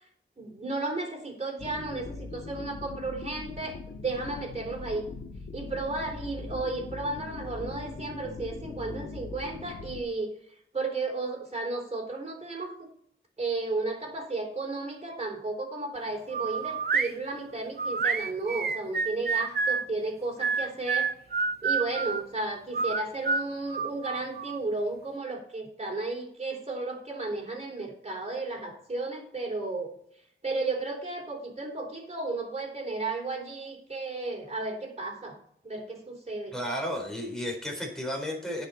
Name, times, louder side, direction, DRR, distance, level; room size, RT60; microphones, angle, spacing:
voice 1, 0.4-5.1 5.5-10.4 10.7-12.9 13.4-21.1 21.6-29.9 30.4-35.4 35.6-36.5, right 3 dB, 30° right, 1 dB, 3.8 m, -33 dB
sound 1, 1.6-10.0, left 3 dB, 60° left, 1.6 m, -41 dB
sound 2, 16.3-17.1 17.8-19.9 20.4-22.2 22.7-24.6, right 5 dB, 50° right, 0.7 m, -28 dB
voice 2, 36.5-38.7, equal, 5° left, 0 dB, 4.2 m, -33 dB
17.0 x 5.9 x 4.3 m, 0.67 s
wide cardioid pair, 120°, 21 cm